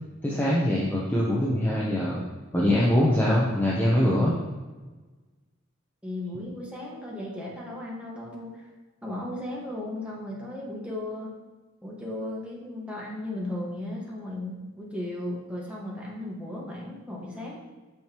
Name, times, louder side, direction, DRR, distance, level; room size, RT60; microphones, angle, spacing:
voice 1, 0.2-2.2 2.5-4.3, left 1 dB, 10° left, -6 dB, 0.9 m, -23 dB
voice 2, 6.0-8.7 9.0-11.3 11.8-17.6, left 1 dB, 5° right, -4 dB, 1.6 m, -36 dB
9.0 x 6.4 x 3.0 m, 1.3 s
head